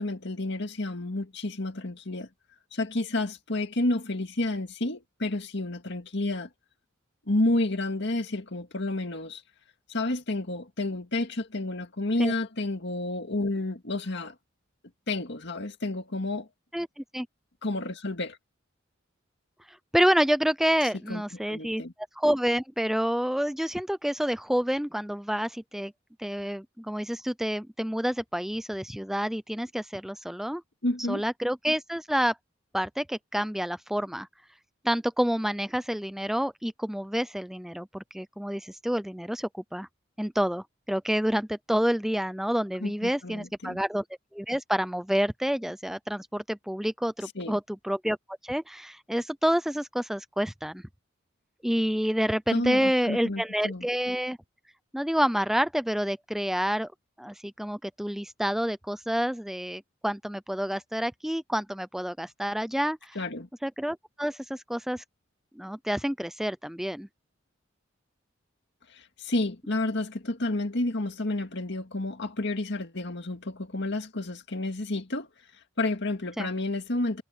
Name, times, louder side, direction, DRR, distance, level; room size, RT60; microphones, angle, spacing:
voice 1, 0.0-2.3 2.7-6.5 7.3-9.4 9.9-14.3 15.1-16.5 17.6-18.4 21.1-21.2 21.5-21.9 30.8-31.2 42.8-43.8 47.4-47.6 52.5-53.9 63.2-63.5 68.9-75.3 75.8-77.2, left 2 dB, 65° left, 2.1 m, -30 dB
voice 2, 19.7-21.8 22.2-25.9 26.2-30.6 31.1-32.4 32.7-34.3 34.8-39.9 40.2-44.0 44.3-48.2 48.4-50.8 51.6-54.4 54.9-56.9 57.2-63.2 63.6-65.0 65.6-67.1 76.4-76.5, equal, ahead, 0.4 m, -28 dB
head